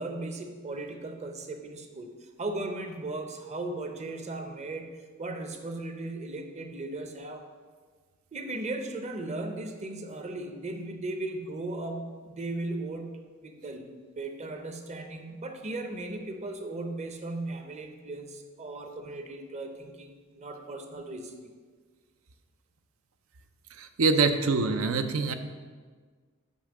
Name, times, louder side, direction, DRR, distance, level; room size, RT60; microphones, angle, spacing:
voice 1, 0.0-2.1 2.4-4.9 5.2-7.5 8.3-21.5, right 2 dB, 35° right, 5 dB, 0.7 m, -37 dB
voice 2, 23.8-25.3, right 4 dB, 80° right, 8 dB, 0.6 m, -25 dB
5.5 x 5.4 x 6.2 m, 1.5 s
head